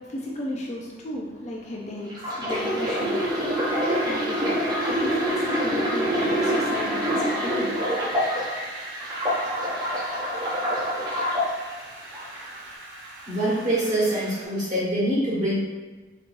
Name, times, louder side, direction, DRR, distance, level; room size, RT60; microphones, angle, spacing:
voice 1, 0.0-3.3 4.1-7.8, left 1 dB, 35° left, -2 dB, 0.5 m, -35 dB
sound 1, 2.1-8.6 9.0-11.5 12.1-12.4, equal, 20° right, 0.6 m, -26 dB
Wind, 2.5-14.5, right 1 dB, 70° right, 0.7 m, -39 dB
voice 2, 13.3-15.6, right 1 dB, 40° right, -7 dB, 1.4 m, -24 dB
4.0 x 3.0 x 2.6 m, 1.3 s
head